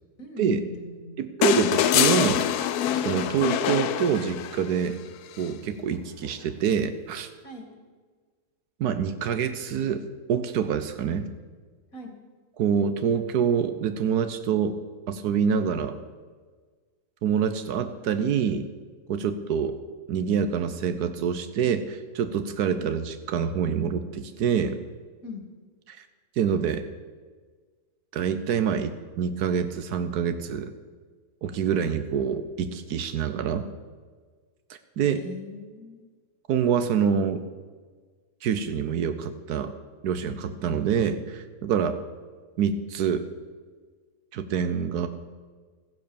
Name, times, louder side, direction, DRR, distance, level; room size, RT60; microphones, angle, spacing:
voice 1, 0.2-1.2 7.4-7.7 11.9-12.1 25.2-25.4 35.0-36.0, left 4 dB, 60° left, 4 dB, 2.6 m, -39 dB
voice 2, 1.2-2.5 3.0-5.0 5.4-7.3 8.8-10.0 10.3-11.3 12.6-14.8 15.1-16.0 17.2-18.7 19.1-19.8 20.1-24.8 25.9-26.0 26.4-26.9 28.1-30.7 31.4-33.6 34.7-35.2 36.5-37.4 38.4-39.7 40.0-42.0 42.6-43.3 44.3-45.1, right 7 dB, 85° right, 10 dB, 1.3 m, -26 dB
sound 1, 1.4-4.8 6.3-6.4, left 11 dB, 85° left, 1.2 m, -24 dB
15.0 x 10.5 x 7.0 m, 1.5 s
omnidirectional pair, 1.6 m